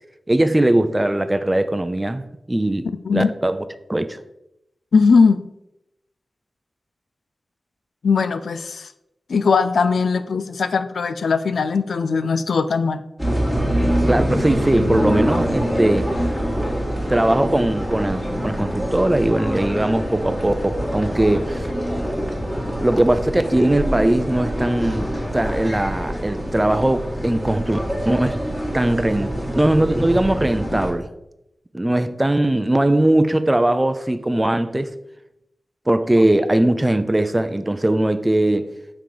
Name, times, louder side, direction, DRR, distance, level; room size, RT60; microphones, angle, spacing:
voice 1, 0.3-2.9 3.1-3.6 3.9-4.2 14.1-16.1 17.1-21.7 22.8-27.8 28.1-28.4 28.7-31.1 31.7-34.9 35.9-38.6, right 1 dB, 20° right, 0.5 m, -20 dB
voice 2, 4.9-5.5 8.0-8.9 9.3-13.0, left 5 dB, 90° left, 0.4 m, -19 dB
sound 1, 13.2-30.9, equal, 10° left, 1.8 m, -25 dB
5.7 x 3.7 x 4.9 m
wide cardioid pair, 70°, 0 cm